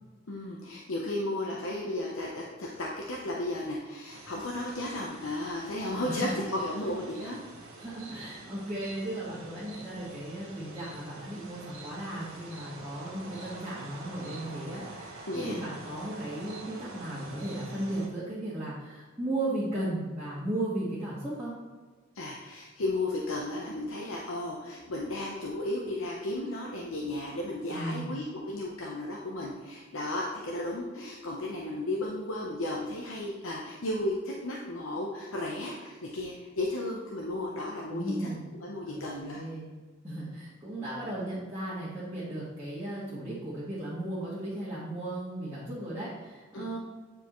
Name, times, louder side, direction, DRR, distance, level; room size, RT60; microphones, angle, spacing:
voice 1, 0.3-7.4 15.3-15.6 22.1-38.3 38.6-39.4 46.5-46.8, left 1 dB, 80° left, -2 dB, 0.8 m, -34 dB
sound 1, 4.1-18.1, right 2 dB, 80° right, 1.2 m, -47 dB
voice 2, 7.8-21.5 27.7-28.2 37.9-38.5 38.9-39.7 40.0-46.8, right 1 dB, 10° right, -12 dB, 1.6 m, -36 dB
9.0 x 4.8 x 3.1 m, 1.4 s
head